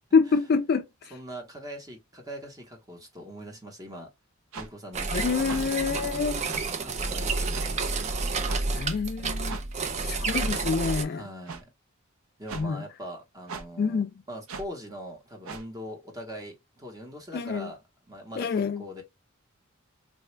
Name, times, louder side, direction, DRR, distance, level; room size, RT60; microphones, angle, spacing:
voice 1, 0.1-1.1 5.1-6.5 8.7-9.6 10.0-11.3 12.6-12.8 13.8-14.1 17.3-17.7 18.4-18.9, left 5 dB, 45° left, 0.3 m, -26 dB
voice 2, 1.1-4.1 4.5-5.6 6.6-7.9 11.0-11.7 12.4-17.8 18.1-19.0, equal, 15° right, 0.9 m, -42 dB
sound 1, 4.5-4.7 5.5-5.6 6.5-6.7 7.5-7.7 8.5-8.6 9.5-9.6 10.5-10.7 11.5-11.6 12.5-12.7 13.5-13.7 14.5-14.7 15.4-15.6, right 4 dB, 80° right, 0.5 m, -38 dB
sound 2, 4.9-11.0, right 3 dB, 35° right, 0.4 m, -30 dB
3.2 x 2.3 x 3.1 m
head